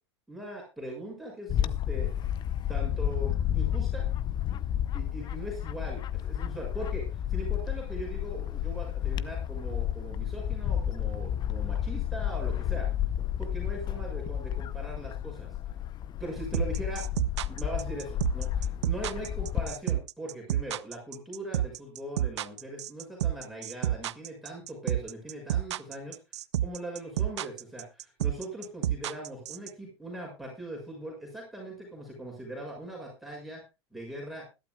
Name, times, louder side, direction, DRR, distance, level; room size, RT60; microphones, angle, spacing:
voice 1, 0.3-2.1 2.7-4.1 4.9-6.0 6.4-12.9 13.4-15.5 16.2-17.1 17.5-26.2 26.6-33.6 33.9-34.5, right 1 dB, ahead, -1 dB, 6.4 m, -40 dB
Bird / Wind, 1.5-19.7, left 10 dB, 30° left, 0.7 m, -31 dB
sound 1, 16.5-29.7, right 12 dB, 80° right, 0.5 m, -29 dB
21.0 x 12.0 x 2.3 m, 0.27 s
hypercardioid pair, 115°, 14 cm